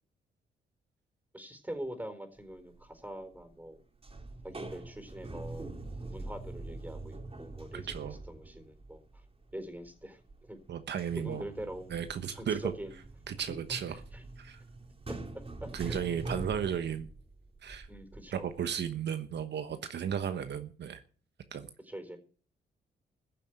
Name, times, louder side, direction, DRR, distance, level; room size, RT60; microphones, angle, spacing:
voice 1, 1.3-3.8 4.4-5.7 6.0-9.0 9.5-10.6 11.2-11.9 12.3-13.0 15.1-15.2 15.6-16.0 17.9-18.5 19.7-19.8 20.2-20.4 21.9-22.2, right 1 dB, 10° right, 8 dB, 4.3 m, -43 dB
sound 1, 2.6-2.9 3.2-3.8 4.0-10.6 10.9-18.6, right 2 dB, 30° right, 3.2 m, -44 dB
voice 2, 7.7-8.2 10.7-11.4 11.9-12.7 13.3-14.0 14.4-14.6 15.7-17.1 17.6-17.9 18.3-21.0 21.5-21.7, right 8 dB, 65° right, 9 dB, 1.2 m, -34 dB
15.0 x 7.0 x 8.1 m, 0.42 s
supercardioid pair, 65°, 19 cm